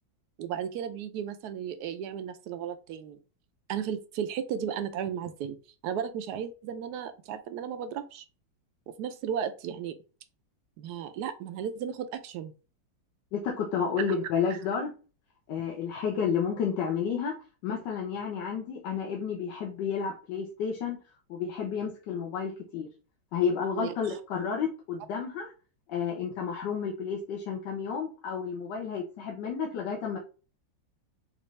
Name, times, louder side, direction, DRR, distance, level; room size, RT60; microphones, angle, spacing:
voice 1, 0.4-3.2 3.7-5.6 5.8-8.2 8.9-10.0 10.8-12.5 15.6-15.7 23.8-24.2, right 8 dB, 70° right, 1.0 m, -35 dB
voice 2, 13.3-14.9 15.5-17.4 17.6-21.0 21.3-22.9 23.3-25.5 25.9-30.2, left 6 dB, 75° left, 1.4 m, -31 dB
5.3 x 2.5 x 3.2 m
omnidirectional pair, 2.1 m